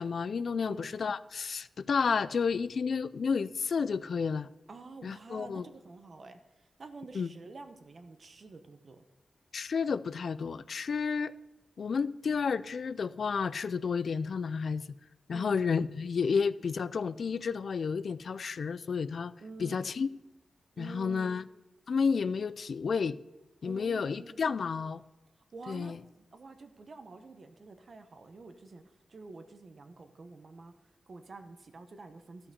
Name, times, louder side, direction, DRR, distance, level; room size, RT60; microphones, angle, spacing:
voice 1, 0.0-4.5 5.0-5.6 7.1-7.3 9.5-11.3 11.8-14.8 15.3-19.3 19.6-20.1 20.8-21.4 21.9-23.2 23.6-25.0 25.7-26.0, left 5 dB, 65° left, 0.3 m, -31 dB
voice 2, 0.6-0.9 4.7-9.0 15.3-15.6 19.4-19.9 20.8-21.4 23.6-24.4 25.5-28.8 29.1-30.7 31.1-32.5, right 3 dB, 50° right, 1.0 m, -48 dB
13.0 x 5.8 x 6.7 m
wide cardioid pair, 110°, 0 cm